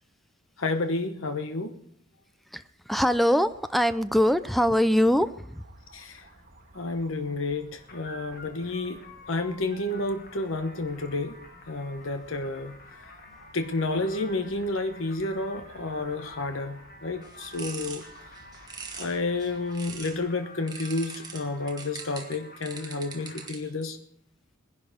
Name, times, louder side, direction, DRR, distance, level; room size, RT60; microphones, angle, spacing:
voice 1, 0.6-1.8 5.9-6.2 6.7-11.4 11.7-13.0 13.5-18.0 19.0-24.0, left 2 dB, 70° left, 7 dB, 1.1 m, -30 dB
voice 2, 2.5-5.6, equal, ahead, 12 dB, 0.5 m, -23 dB
sound 1, 3.4-20.3, right 2 dB, 50° right, 3.0 m, -55 dB
sound 2, 7.9-23.5, left 2 dB, 50° left, 1.8 m, -49 dB
sound 3, 17.2-20.2 20.7-23.8, right 5 dB, 20° right, 1.7 m, -42 dB
19.5 x 11.0 x 5.1 m, 0.66 s
head